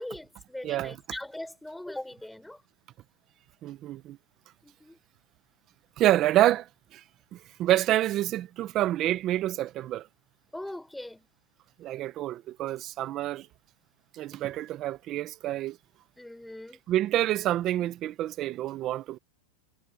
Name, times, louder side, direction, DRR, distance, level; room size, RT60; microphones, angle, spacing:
voice 1, 0.0-2.6 4.6-5.0 10.5-11.3 16.2-16.8, left 1 dB, 5° left, 4.9 m, -40 dB
voice 2, 0.6-1.0 3.6-4.2 6.0-7.0 7.3-10.1 11.8-13.5 14.1-15.8 16.9-19.2, right 14 dB, 35° right, 1.2 m, -27 dB
supercardioid pair, 135°, 0 cm